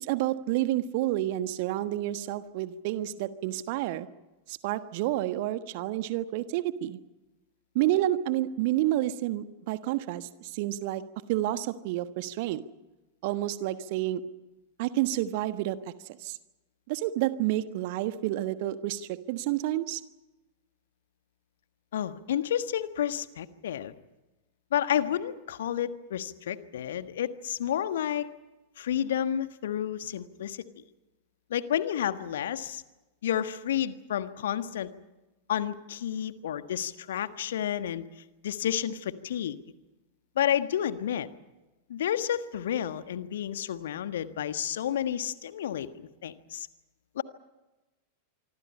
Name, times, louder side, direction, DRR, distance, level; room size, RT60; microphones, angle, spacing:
voice 1, 0.0-4.1 4.5-7.0 7.7-11.0 11.3-12.6 13.2-14.2 14.8-15.8 16.2-16.4 16.9-20.0, right 14 dB, 50° right, 12 dB, 1.3 m, -29 dB
voice 2, 21.9-23.9 24.7-28.3 28.8-30.6 31.5-32.8 33.2-34.9 35.5-38.0 38.4-39.6 40.3-41.3 41.9-46.7 47.1-47.2, left 10 dB, 60° left, 11 dB, 1.5 m, -30 dB
25.5 x 25.5 x 5.6 m, 1.1 s
figure-of-eight pair, 90°, 0 cm